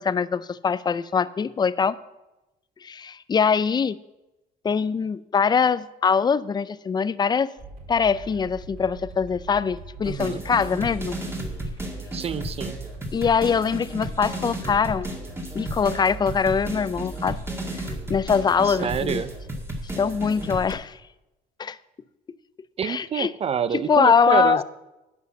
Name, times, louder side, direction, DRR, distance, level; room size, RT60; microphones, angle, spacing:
voice 1, 0.0-2.0 2.8-4.0 4.6-7.5 7.9-11.2 13.1-15.1 15.5-17.4 18.1-19.2 20.0-21.0 21.6-21.8 22.8-23.3 23.9-24.6, left 6 dB, 25° left, 17 dB, 0.4 m, -23 dB
sound 1, 7.6-20.7, right 3 dB, 70° right, 4.6 m, -40 dB
sound 2, 10.0-20.7, equal, 15° right, 1.9 m, -34 dB
voice 2, 10.1-10.4 12.1-12.8 18.6-19.3 22.8-24.6, right 7 dB, 35° right, 15 dB, 0.6 m, -27 dB
10.5 x 6.2 x 7.7 m, 0.99 s
cardioid pair, 110°, 17 cm